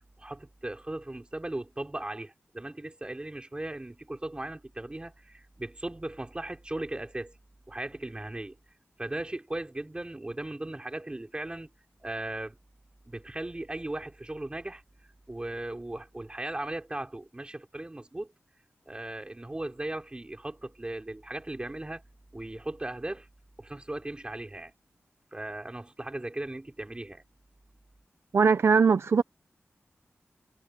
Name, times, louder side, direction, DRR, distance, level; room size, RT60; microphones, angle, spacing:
voice 1, 0.2-7.4 7.7-8.6 9.0-11.7 12.0-12.6 13.1-14.8 15.3-18.3 18.9-22.0 22.3-23.3 23.6-24.7 25.3-27.2, right 1 dB, 20° right, 3.9 m, -37 dB
voice 2, 28.3-29.2, right 5 dB, 65° right, 0.6 m, -21 dB
wide cardioid pair, 95°, 5 cm